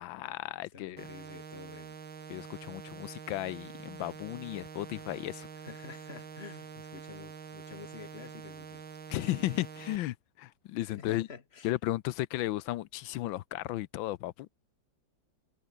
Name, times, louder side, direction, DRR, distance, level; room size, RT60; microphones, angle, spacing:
voice 1, 0.0-1.1 2.3-5.5 9.1-11.3 11.6-14.5, left 15 dB, 90° left, 1.4 m, -35 dB
voice 2, 0.7-2.0 5.6-8.8 10.8-11.7, left 5 dB, 35° left, 1.9 m, -49 dB
sound 1, 1.0-10.0, right 6 dB, 90° right, 3.0 m, -46 dB
omnidirectional pair, 2.1 m